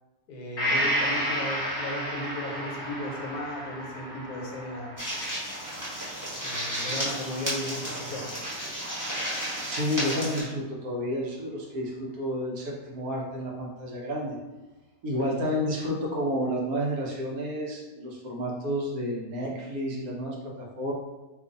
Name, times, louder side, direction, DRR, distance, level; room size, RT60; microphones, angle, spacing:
voice 1, 0.3-4.9 6.4-8.3, left 1 dB, 75° left, 0 dB, 1.2 m, -35 dB
Gong, 0.6-8.2 8.6-8.7, equal, 50° left, 1.0 m, -33 dB
sound 1, 5.0-10.4, equal, 15° right, 0.8 m, -33 dB
voice 2, 9.6-14.4 15.0-20.9, equal, 70° right, -3 dB, 1.2 m, -31 dB
3.0 x 2.4 x 3.8 m, 1.1 s
omnidirectional pair, 1.7 m